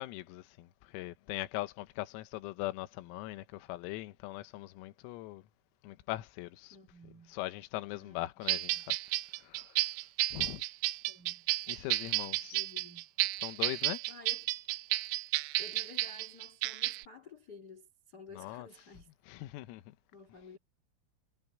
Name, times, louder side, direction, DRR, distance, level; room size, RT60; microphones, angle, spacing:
voice 1, 0.0-5.4 5.8-6.8 7.3-9.0 9.4-9.9 10.3-10.6 11.7-12.6 13.4-14.0 18.3-18.7 19.3-20.0, left 17 dB, 85° left, 3.8 m, -41 dB
voice 2, 6.7-7.4 7.9-8.2 8.6-8.9 11.1-11.5 12.5-13.1 14.1-14.5 15.6-19.1 20.1-20.6, left 3 dB, 40° left, 1.5 m, -53 dB
sound 1, 8.5-17.0, right 18 dB, 85° right, 2.8 m, -32 dB
omnidirectional pair, 6.0 m